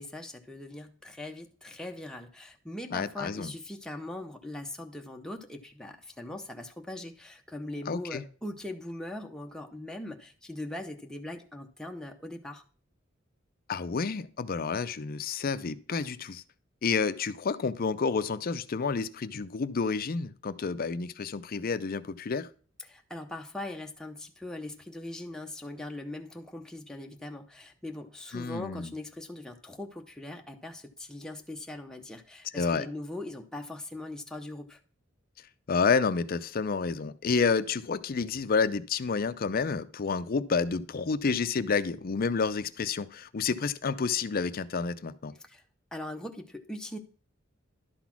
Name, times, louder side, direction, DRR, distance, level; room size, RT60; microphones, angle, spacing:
voice 1, 0.0-12.6 22.8-34.8 45.4-45.6 45.9-47.0, left 1 dB, 5° left, 0.7 m, -41 dB
voice 2, 2.9-3.5 7.9-8.2 13.7-16.4 16.8-22.5 28.3-28.9 32.5-32.9 35.7-45.3, left 5 dB, 45° left, 0.5 m, -29 dB
11.5 x 4.1 x 5.9 m
head